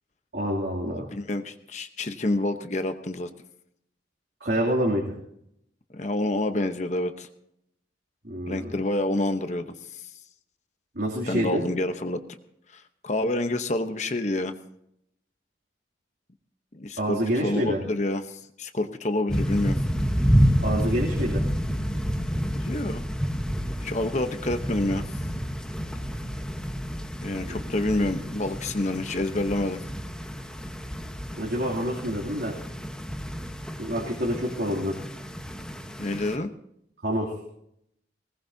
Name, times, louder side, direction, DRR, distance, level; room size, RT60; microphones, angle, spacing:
voice 1, 0.3-1.1 4.4-5.1 8.2-8.7 10.9-11.6 17.0-17.8 20.6-21.4 27.4-27.6 31.4-32.5 33.8-34.9 37.0-37.3, equal, 65° right, -4 dB, 2.8 m, -27 dB
voice 2, 0.9-3.3 5.9-7.3 8.5-10.1 11.3-12.2 12.7-14.5 16.7-19.8 22.5-23.0 23.8-25.0 27.2-29.8 36.0-36.5, left 2 dB, 40° left, 8 dB, 0.9 m, -28 dB
sound 1, 19.3-36.4, equal, 5° left, 1.1 m, -29 dB
20.0 x 19.5 x 2.7 m, 0.75 s
head